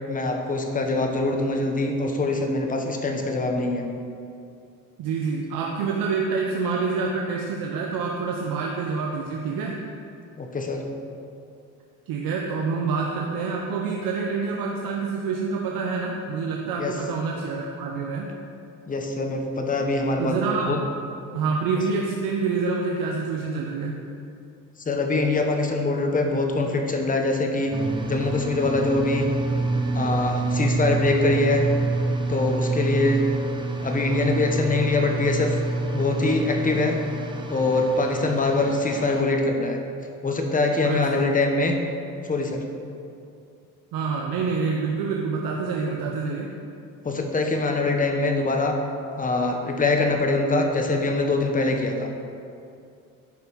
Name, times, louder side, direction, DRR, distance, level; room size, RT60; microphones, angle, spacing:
voice 1, 0.1-3.9 10.4-10.9 16.8-16.9 18.9-20.8 24.9-27.7 28.1-29.3 29.9-31.7 32.3-33.2 33.8-35.6 35.9-37.0 37.5-39.8 40.2-41.8 42.2-42.6 47.0-48.8 49.2-52.1, left 2 dB, 25° left, 3 dB, 1.0 m, -23 dB
voice 2, 5.0-9.8 12.1-18.3 20.2-20.8 21.3-24.0 40.8-41.3 43.9-46.5, right 4 dB, 85° right, 0 dB, 0.9 m, -27 dB
sound 1, 27.7-39.2, right 2 dB, 15° right, 0.9 m, -27 dB
10.5 x 5.4 x 4.7 m, 2.5 s
cardioid pair, 120°, 34 cm